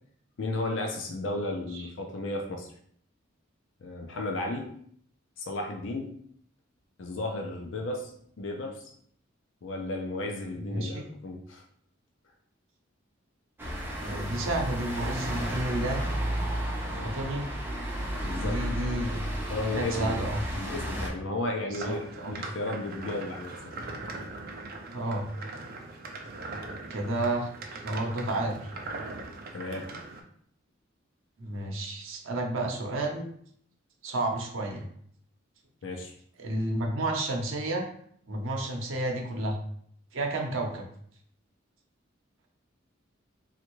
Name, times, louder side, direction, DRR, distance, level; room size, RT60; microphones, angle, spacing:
voice 1, 0.4-2.7 3.8-4.8 5.4-6.2 7.0-8.8 9.6-11.6 16.8-17.1 18.2-18.6 19.5-20.2 20.5-23.6 29.5-29.9 35.8-36.1, left 2 dB, 70° left, 3 dB, 0.5 m, -34 dB
voice 2, 10.6-11.0 14.0-16.0 16.9-17.5 18.4-19.2 19.7-20.4 21.7-22.3 24.9-25.3 26.9-28.7 31.4-33.3 34.0-34.9 36.4-37.9 38.3-39.6 40.1-40.9, right 1 dB, 90° right, 2 dB, 0.7 m, -31 dB
sound 1, 13.6-21.1, right 1 dB, 10° right, 0.7 m, -32 dB
sound 2, 21.7-30.2, right 2 dB, 50° right, 0.5 m, -41 dB
3.3 x 2.4 x 3.0 m, 0.63 s
head